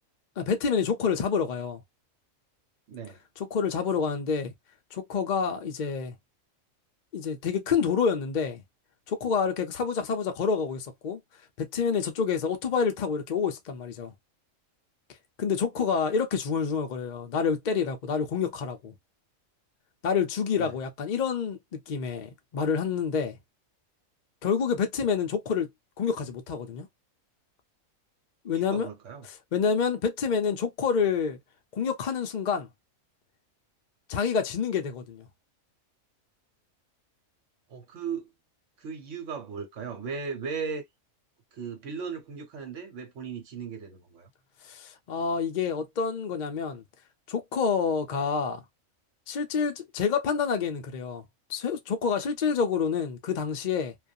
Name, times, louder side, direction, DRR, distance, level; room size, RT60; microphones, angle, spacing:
voice 1, 0.4-1.8 3.4-4.5 4.9-6.1 7.1-8.6 9.1-11.2 11.6-14.1 15.4-18.9 20.0-21.6 21.9-23.4 24.4-25.7 26.0-26.9 28.4-28.9 29.3-31.4 31.7-32.7 34.1-35.3 44.6-46.8 47.3-48.6 49.3-51.2 51.5-53.9, left 6 dB, 60° left, 0.4 m, -28 dB
voice 2, 2.9-3.2 20.6-20.7 28.5-29.3 37.7-38.3 38.8-40.8 41.5-44.3, right 6 dB, 65° right, 1.2 m, -37 dB
2.4 x 2.3 x 2.5 m
omnidirectional pair, 1.4 m